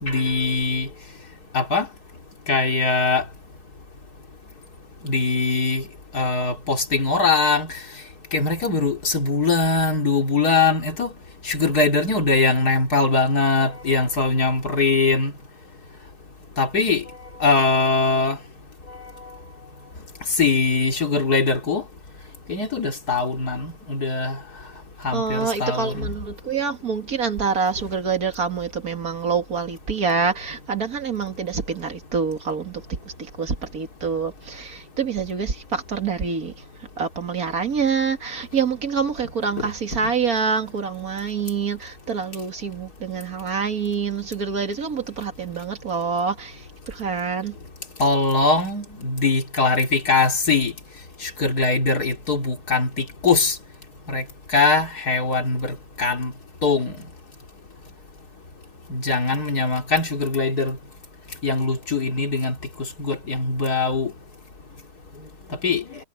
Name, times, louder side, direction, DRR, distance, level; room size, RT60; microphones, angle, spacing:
voice 1, 0.0-0.9 1.5-1.9 2.5-3.2 5.0-5.8 6.1-7.8 8.3-11.1 11.4-15.3 16.6-17.0 17.4-18.4 20.4-21.8 22.5-24.4 25.0-26.1 48.0-50.7 51.2-53.6 54.1-54.2 54.5-56.3 56.6-57.0 58.9-60.8 61.4-62.6 63.0-64.1 65.6-65.8, left 3 dB, 75° left, 3.6 m, -21 dB
voice 2, 25.1-32.8 33.4-36.5 37.0-46.6 46.9-47.5, right 5 dB, 65° right, 2.6 m, -26 dB
omnidirectional pair, 1.6 m